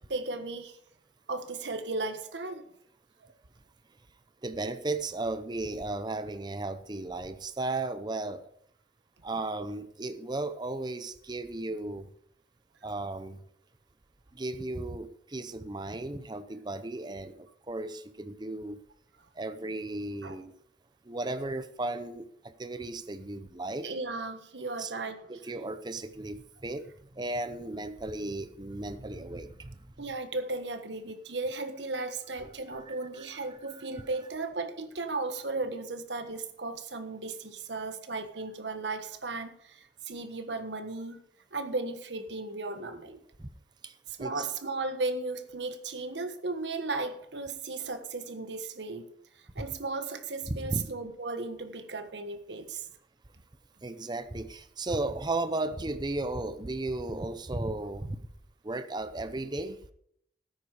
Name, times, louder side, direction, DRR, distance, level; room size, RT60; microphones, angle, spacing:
voice 1, 0.1-0.8 1.3-2.7 3.2-3.3 20.2-20.4 23.8-25.4 30.0-41.2 41.5-43.2 44.1-49.1 49.4-52.9, right 3 dB, 75° right, 8 dB, 1.4 m, -35 dB
voice 2, 4.4-8.5 9.2-12.1 12.8-13.4 14.3-18.8 19.3-20.5 21.0-23.9 24.8-24.9 25.3-29.8 32.9-33.0 33.7-33.8 43.4-43.5 43.8-44.4 50.5-50.8 53.8-58.2 58.6-59.8, right 2 dB, 25° right, 11 dB, 0.7 m, -35 dB
13.5 x 9.6 x 4.9 m, 0.71 s
head